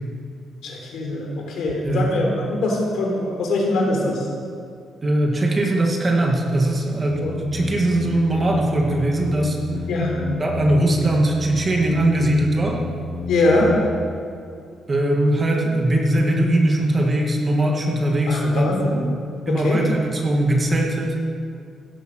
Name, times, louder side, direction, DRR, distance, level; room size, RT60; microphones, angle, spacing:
voice 1, 0.6-4.3 7.2-7.4 9.9-10.2 13.3-13.8 18.3-19.0 19.5-19.8, left 2 dB, 70° left, 0 dB, 3.8 m, -22 dB
voice 2, 5.0-9.6 10.4-12.8 14.9-18.7 19.5-21.2, right 1 dB, 20° right, 0 dB, 1.7 m, -20 dB
sound 1, 7.0-13.7, left 1 dB, 40° right, 5.0 m, -32 dB
16.5 x 12.0 x 6.2 m, 2.3 s
cardioid pair, 175°, 0 cm